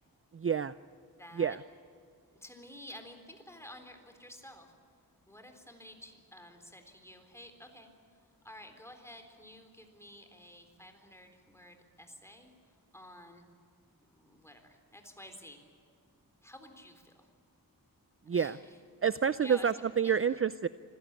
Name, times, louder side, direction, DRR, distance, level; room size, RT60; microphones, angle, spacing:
voice 1, 0.3-0.8 1.3-1.6 18.3-18.6 19.0-20.7, right 7 dB, 40° right, 15 dB, 0.5 m, -28 dB
voice 2, 1.2-1.6 2.3-4.7 5.3-13.4 14.0-15.6 16.4-17.3 18.3-18.7 19.4-19.7 20.0-20.2, left 1 dB, 5° left, 5 dB, 3.9 m, -52 dB
26.0 x 16.5 x 8.9 m, 2.3 s
wide cardioid pair, 95°, 36 cm